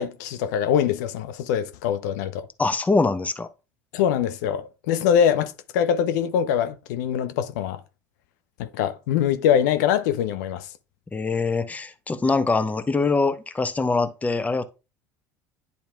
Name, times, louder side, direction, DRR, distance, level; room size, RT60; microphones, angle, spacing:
voice 1, 0.0-2.5 3.9-7.8 8.6-10.7, left 9 dB, 65° left, 0.5 m, -23 dB
voice 2, 2.6-3.5 11.1-14.6, left 3 dB, 15° left, 0.6 m, -23 dB
10.5 x 4.2 x 2.3 m
hypercardioid pair, 70°, 10 cm